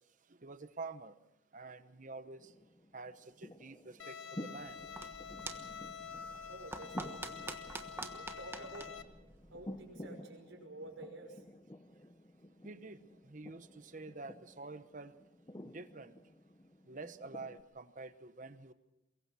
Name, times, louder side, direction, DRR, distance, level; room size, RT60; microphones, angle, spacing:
voice 1, 0.3-1.1 1.5-2.5 2.9-4.8 12.6-15.1 15.6-16.1 16.9-18.7, right 3 dB, 40° right, 12 dB, 1.0 m, -48 dB
sound 1, 2.4-17.6, left 1 dB, 20° left, 0.7 m, -52 dB
Bowed string instrument, 4.0-9.0, left 6 dB, 80° left, 1.0 m, -47 dB
sound 2, 4.6-10.0, right 2 dB, 10° right, 1.2 m, -48 dB
voice 2, 6.5-7.4 7.9-8.9 9.5-11.4, right 2 dB, 85° right, 1 dB, 5.8 m, -50 dB
23.0 x 22.5 x 6.1 m, 0.97 s
head